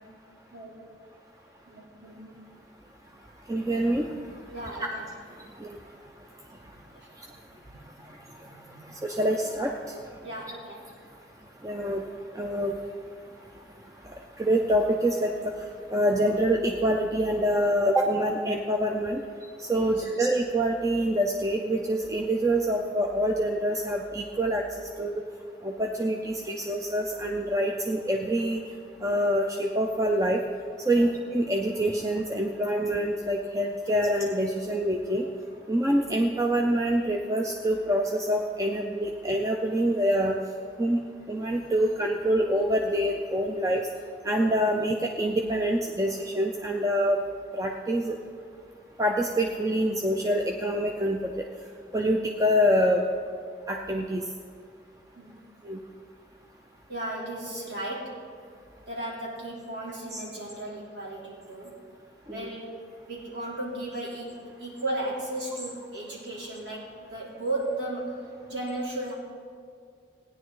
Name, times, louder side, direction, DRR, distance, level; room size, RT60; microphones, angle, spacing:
voice 1, 1.7-2.4 4.5-5.0 6.7-7.1 7.7-9.2 10.2-10.8 19.7-20.1 30.9-31.1 35.2-35.3 55.1-55.4 56.9-58.2 58.9-61.8 62.3-62.7 63.0-69.1, right 1 dB, 80° right, -6 dB, 3.2 m, -36 dB
voice 2, 3.5-4.1 4.8-4.9 5.6-5.8 9.0-9.8 11.6-12.0 12.3-12.8 14.1-15.5 15.9-19.2 19.6-25.2 25.6-28.6 29.0-30.4 30.9-35.3 35.7-40.4 40.8-41.0 41.3-43.8 44.2-47.2 47.5-48.2 49.0-51.3 51.9-53.1 53.7-54.2 55.6-55.8 60.1-60.2 62.3-62.5, equal, 20° right, 1 dB, 0.5 m, -26 dB
16.5 x 10.0 x 3.8 m, 2.2 s
head